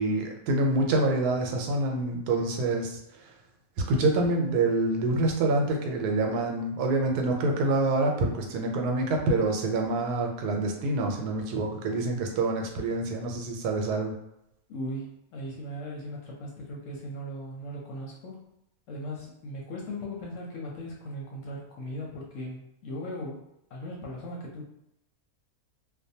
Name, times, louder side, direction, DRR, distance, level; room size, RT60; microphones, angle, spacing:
voice 1, 0.0-3.0 3.9-14.1, right 2 dB, 85° right, 2 dB, 1.1 m, -26 dB
voice 2, 14.7-18.4 18.9-23.4 23.7-24.6, equal, 65° left, -2 dB, 0.8 m, -38 dB
2.5 x 2.1 x 2.6 m, 0.81 s
omnidirectional pair, 1.6 m